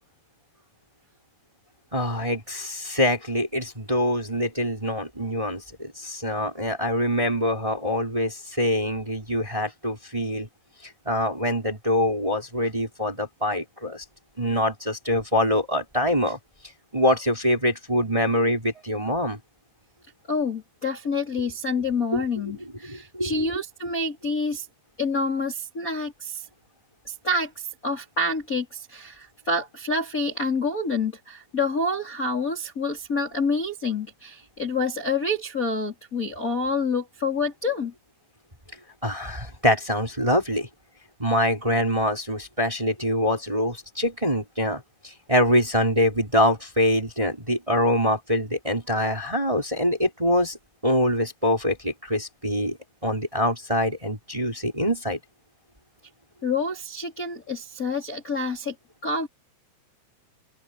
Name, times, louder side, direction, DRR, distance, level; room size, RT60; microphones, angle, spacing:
voice 1, 1.9-10.5 11.1-14.0 14.4-16.4 16.9-19.4 22.1-22.2 22.8-23.5 39.0-40.7 41.2-50.6 50.8-52.8 53.0-55.2, left 1 dB, 5° right, 4.0 m, -24 dB
voice 2, 20.3-24.6 25.0-26.4 27.0-37.9 56.4-58.7 59.0-59.3, left 3 dB, 20° left, 3.3 m, -27 dB
open air
omnidirectional pair, 5.7 m